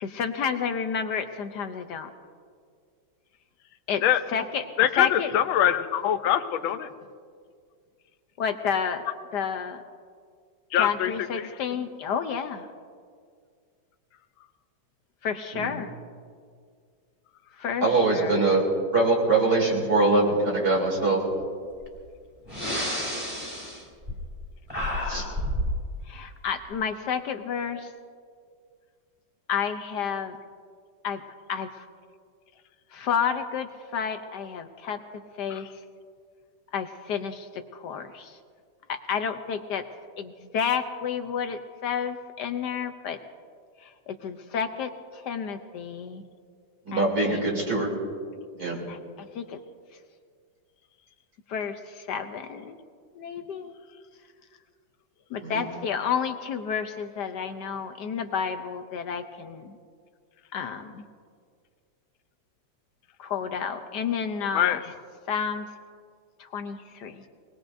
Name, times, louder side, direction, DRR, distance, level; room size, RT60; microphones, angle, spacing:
voice 1, 0.0-2.1 3.9-4.0 4.3-4.6 5.0-5.3 8.4-9.1 9.3-9.8 10.8-12.7 15.2-15.9 17.6-18.4 24.7-25.3 26.1-27.9 29.5-30.4 31.0-31.2 31.5-31.9 32.9-35.0 35.4-35.7 36.7-38.4 38.9-39.8 40.2-43.2 43.8-46.2 46.9-47.5 48.9-49.6 51.5-52.8 53.2-53.7 55.3-59.8 60.5-61.1 63.2-64.8 65.3-65.7 66.4-67.2, left 7 dB, 65° left, 7 dB, 1.2 m, -31 dB
voice 2, 4.8-6.9 10.7-11.1 11.4-11.5 35.5-35.6 64.5-64.8, left 11 dB, 90° left, 10 dB, 1.5 m, -23 dB
voice 3, 17.8-18.6 18.9-21.2 25.1-25.3 46.9-47.9 48.6-48.8 55.4-55.6, right 3 dB, 50° right, -3 dB, 3.7 m, -23 dB
Breathing, 21.8-22.0 22.4-24.4 24.7-25.8, equal, 15° right, 3.1 m, -30 dB
23.0 x 19.5 x 2.6 m, 2.1 s
omnidirectional pair, 2.1 m